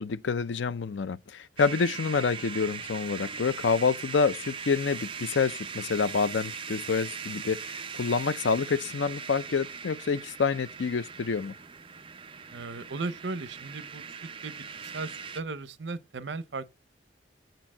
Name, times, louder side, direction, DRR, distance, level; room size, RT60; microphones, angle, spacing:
voice 1, 0.0-11.5, left 5 dB, 90° left, 0.5 m, -28 dB
sound 1, 1.6-15.4, right 6 dB, 30° right, 0.5 m, -40 dB
voice 2, 12.5-14.1 14.4-16.7, right 3 dB, 75° right, 0.7 m, -37 dB
7.9 x 4.5 x 6.0 m
head